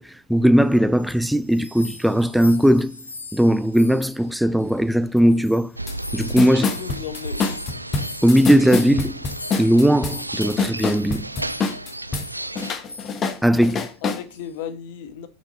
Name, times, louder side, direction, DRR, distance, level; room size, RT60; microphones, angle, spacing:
voice 1, 0.0-3.0 3.3-5.7 6.1-6.7 8.2-9.1 9.6-11.2 13.4-13.9, equal, ahead, 0.5 m, -18 dB
sound 1, 0.7-5.0 5.2-11.2 11.5-11.7 12.2-12.5 12.9-13.3 13.6-13.8 14.3-14.6, left 3 dB, 85° left, 2.3 m, -41 dB
sound 2, 5.8-12.8, right 2 dB, 85° right, 0.5 m, -34 dB
sound 3, 5.9-6.0 6.2-12.3 12.6-14.2, left 4 dB, 25° left, 1.4 m, -26 dB
voice 2, 6.5-7.6 12.4-12.5 14.0-15.3, left 9 dB, 50° left, 1.4 m, -35 dB
9.1 x 6.6 x 4.1 m
figure-of-eight pair, 90°, 0 cm